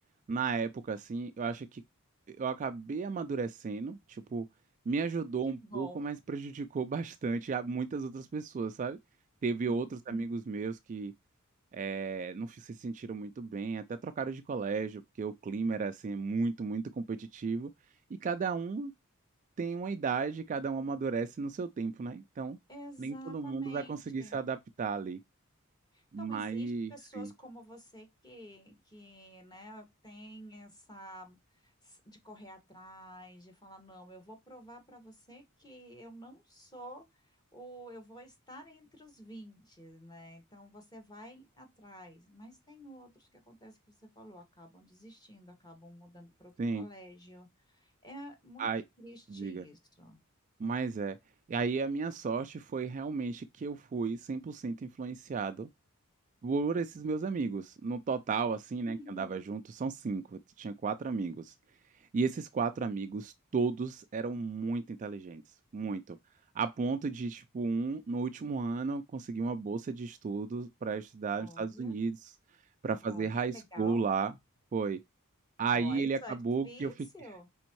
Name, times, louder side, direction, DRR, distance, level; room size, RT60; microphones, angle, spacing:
voice 1, 0.3-1.8 2.3-4.5 4.9-9.0 9.4-11.1 11.7-17.7 18.1-18.9 19.6-22.6 23.0-25.2 26.1-27.3 46.6-46.9 48.6-48.8 49.3-49.7 50.6-51.2 51.5-55.7 56.4-61.5 62.1-65.4 65.7-66.2 66.5-72.3 72.8-74.3 74.7-75.0 75.6-76.9, right 4 dB, 35° right, 0.3 m, -34 dB
voice 2, 5.5-6.1 9.6-10.3 22.7-24.4 25.9-31.4 31.6-37.0 37.5-43.8 44.1-48.7 49.0-50.2 58.8-59.4 71.4-72.0 73.0-74.1 75.7-76.4 76.6-77.5, equal, 20° left, 1.4 m, -50 dB
5.1 x 3.5 x 3.0 m
head